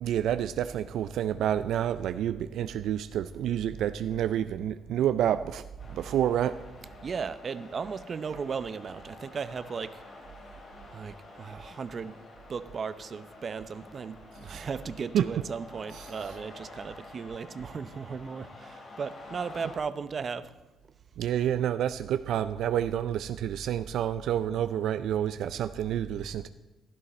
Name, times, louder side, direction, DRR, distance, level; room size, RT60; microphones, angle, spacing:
voice 1, 0.0-6.6 14.5-14.7 15.1-15.3 21.2-26.5, right 10 dB, 80° right, 11 dB, 0.4 m, -29 dB
sound 1, 5.8-19.8, left 2 dB, 55° left, 4.2 m, -49 dB
voice 2, 7.0-10.0 10.9-12.2 12.5-20.5, right 5 dB, 45° right, 13 dB, 0.7 m, -36 dB
16.0 x 11.5 x 4.3 m, 1.1 s
cardioid pair, 90°, 0 cm